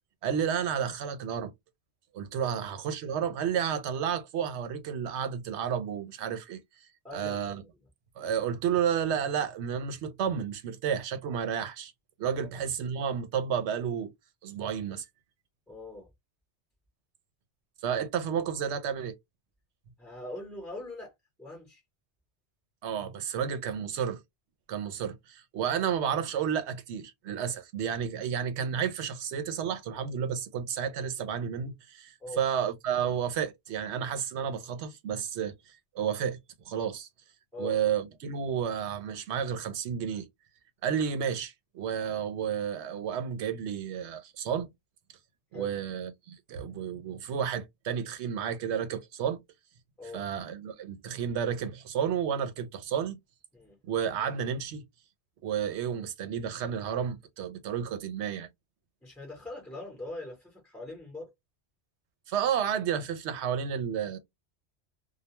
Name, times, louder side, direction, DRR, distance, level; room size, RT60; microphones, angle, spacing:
voice 1, 0.2-1.5 2.1-6.6 7.1-7.6 8.2-11.9 12.2-14.1 14.4-15.1 17.8-19.1 22.8-24.2 24.7-36.4 36.7-37.1 37.6-40.3 40.8-44.7 45.5-49.4 50.1-53.2 53.8-54.8 55.4-58.5 62.3-64.2, right 8 dB, 80° right, 0.9 m, -31 dB
voice 2, 7.0-7.7 12.3-12.5 15.7-16.1 20.0-21.1 21.4-21.8 32.2-32.4 37.5-37.8 45.5-45.8 50.0-50.3 53.5-53.8 59.0-61.3, left 2 dB, ahead, 0.7 m, -42 dB
2.3 x 2.1 x 2.8 m
omnidirectional pair, 1.1 m